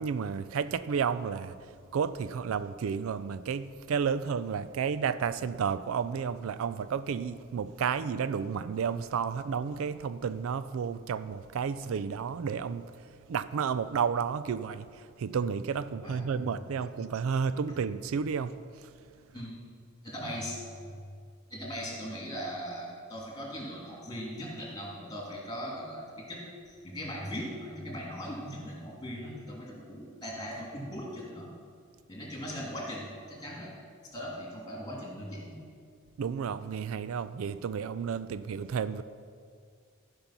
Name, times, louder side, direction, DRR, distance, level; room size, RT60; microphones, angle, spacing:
voice 1, 0.0-1.6 1.9-12.8 13.3-14.9 15.2-18.6 36.2-39.0, right 6 dB, 75° right, 0.4 m, -31 dB
voice 2, 16.0-16.6 17.7-17.8 19.3-19.6 20.0-20.6 21.5-31.5 32.1-33.8 34.1-35.6, equal, 20° left, 2.8 m, -39 dB
14.5 x 5.3 x 5.9 m
head